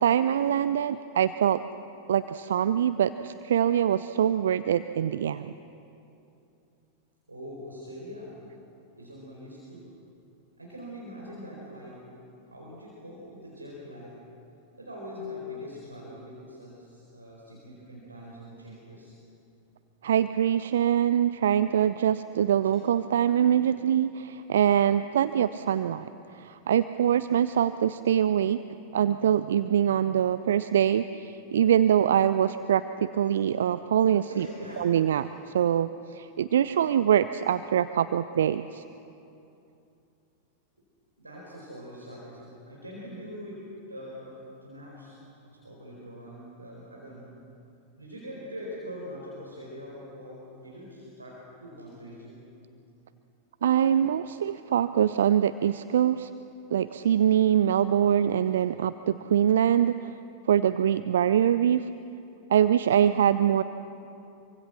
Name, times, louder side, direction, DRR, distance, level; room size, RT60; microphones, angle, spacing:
voice 1, 0.0-1.6 2.1-5.6 20.0-26.1 26.3-28.6 28.9-32.8 33.1-34.5 34.8-35.3 35.5-38.8 53.6-56.3 56.7-60.1 60.5-61.9 62.5-63.6, right 9 dB, 60° right, 13 dB, 0.5 m, -24 dB
voice 2, 7.3-8.7 9.0-9.9 10.6-12.1 12.5-14.2 14.8-19.1 22.6-22.8 34.3-35.0 41.2-47.3 48.0-52.5, left 1 dB, 85° right, -4 dB, 4.3 m, -43 dB
25.5 x 24.5 x 6.2 m, 2.8 s
figure-of-eight pair, 90°, 0 cm